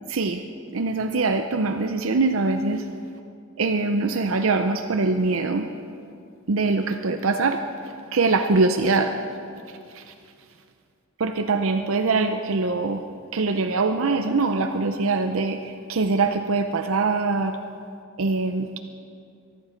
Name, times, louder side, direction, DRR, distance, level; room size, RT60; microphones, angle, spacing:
voice 1, 0.1-0.4 0.7-2.9 3.6-5.7 6.5-9.2 9.9-10.1 11.2-13.0 13.3-17.6 18.2-18.8, right 3 dB, 65° right, 6 dB, 0.6 m, -23 dB
23.5 x 11.0 x 5.1 m, 2.4 s
head